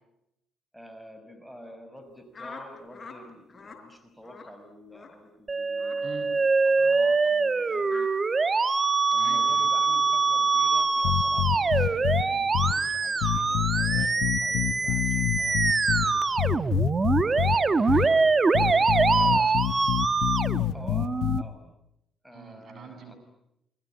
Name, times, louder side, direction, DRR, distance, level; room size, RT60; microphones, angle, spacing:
voice 1, 0.7-7.9 9.1-16.3 19.2-19.6 20.7-21.6 22.2-23.2, equal, 5° right, 8 dB, 5.6 m, -48 dB
sound 1, 2.3-3.2 3.5-3.8 4.2-4.5 4.9-5.2 5.8-6.0 6.7-7.0 7.8-8.1, left 4 dB, 35° left, 4.8 m, -44 dB
Musical instrument, 5.5-21.4, right 4 dB, 30° right, 1.3 m, -24 dB
voice 2, 9.2-9.7 17.7-18.3 18.6-19.5 22.3-23.2, right 4 dB, 55° right, 7 dB, 7.7 m, -45 dB
sound 2, 11.0-12.2 12.5-12.7 13.2-16.1 16.4-17.6 17.9-18.0 18.5-21.4, left 15 dB, 85° left, 1.1 m, -26 dB
29.0 x 22.5 x 8.9 m, 0.82 s
supercardioid pair, 75°, 0 cm